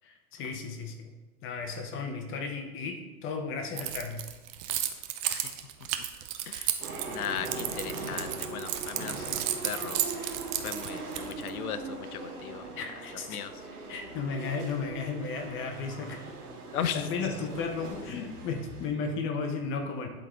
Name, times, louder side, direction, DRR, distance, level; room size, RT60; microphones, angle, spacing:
voice 1, 0.0-1.1 1.4-4.2 7.3-7.5 12.7-13.4 13.9-16.2 16.9-20.1, left 4 dB, 30° left, 6 dB, 0.8 m, -34 dB
Keys jangling, 3.8-11.5, right 12 dB, 30° right, 0.5 m, -33 dB
sound 1, 6.8-18.9, right 3 dB, 90° right, 1.6 m, -40 dB
voice 2, 7.1-9.3 9.6-10.0 10.6-12.7 13.3-13.5 16.7-17.0, left 9 dB, 75° left, 11 dB, 0.7 m, -36 dB
11.5 x 3.9 x 3.3 m, 1.2 s
hypercardioid pair, 110°, 45 cm